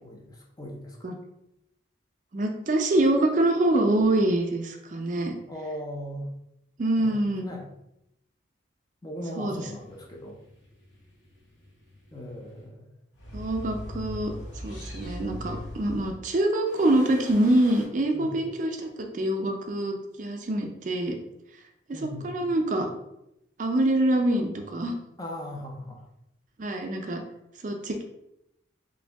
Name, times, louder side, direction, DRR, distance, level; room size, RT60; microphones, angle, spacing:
voice 1, 0.2-1.0 5.5-6.3 7.0-7.1 7.4-7.6 9.0-10.4 12.1-12.9 18.2-18.3 21.9-22.3 25.2-26.0, equal, 20° left, 0 dB, 0.4 m, -38 dB
voice 2, 2.3-5.3 6.8-7.5 9.4-9.7 13.3-14.3 14.6-21.2 21.9-22.9 23.6-24.9 26.6-27.2 27.6-28.0, right 1 dB, 40° right, 3 dB, 0.4 m, -25 dB
sound 1, 9.6-12.6 13.1-16.2 16.7-17.8, left 1 dB, 80° left, 1.0 m, -41 dB
3.0 x 2.6 x 3.3 m, 0.85 s
head